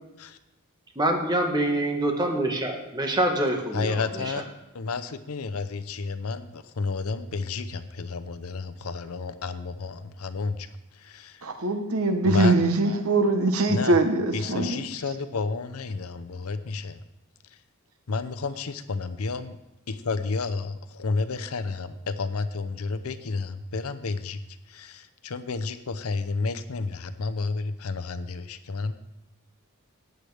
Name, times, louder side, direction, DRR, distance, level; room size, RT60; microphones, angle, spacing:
voice 1, 0.9-4.2, right 1 dB, 20° right, 1.4 m, -25 dB
voice 2, 3.7-10.7 10.9-11.4 12.2-12.6 13.7-14.0 14.3-17.0 17.5-17.6 18.1-19.6 19.9-24.4 24.7-28.9, left 4 dB, 85° left, 0.7 m, -31 dB
voice 3, 11.4-14.8, right 2 dB, 80° right, 1.0 m, -22 dB
15.0 x 9.3 x 3.4 m
head